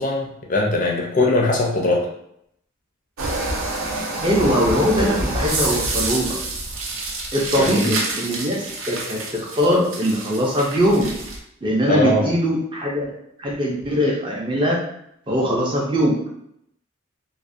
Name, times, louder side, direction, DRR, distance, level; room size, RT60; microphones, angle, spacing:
voice 1, 0.0-2.1 7.6-7.7 11.9-12.3, left 2 dB, 40° left, -1 dB, 0.4 m, -20 dB
sound 1, 3.2-11.4, right 2 dB, 80° right, 0.5 m, -27 dB
voice 2, 4.2-6.4 7.3-11.1 11.6-13.1 13.4-14.8 15.3-16.3, equal, 25° right, -3 dB, 0.4 m, -21 dB
2.4 x 2.0 x 2.5 m, 0.74 s
head